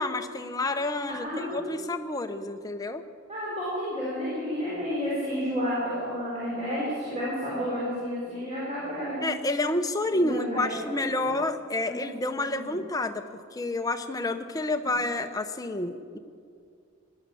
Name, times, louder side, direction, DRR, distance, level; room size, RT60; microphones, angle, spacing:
voice 1, 0.0-3.0 9.2-13.2 13.5-16.2, left 2 dB, 15° left, 7 dB, 0.6 m, -29 dB
voice 2, 1.1-1.8 3.3-9.2 10.1-10.7 11.2-11.4 11.8-12.0 12.3-12.8, equal, 30° right, -8 dB, 4.3 m, -31 dB
18.0 x 10.5 x 7.0 m, 2.3 s
head